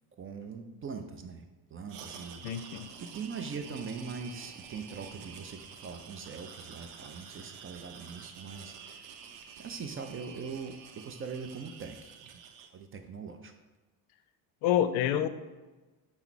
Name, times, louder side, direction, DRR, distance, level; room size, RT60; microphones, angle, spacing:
voice 1, 0.2-1.5 1.7-9.2 9.6-12.4 12.7-13.5, right 5 dB, 30° right, 7 dB, 0.4 m, -42 dB
sound 1, 1.9-12.7, right 7 dB, 90° right, 0.6 m, -49 dB
voice 2, 2.4-2.9 14.6-15.3, left 10 dB, 75° left, 11 dB, 0.5 m, -27 dB
5.6 x 2.1 x 4.5 m, 1.2 s
supercardioid pair, 80°, 48 cm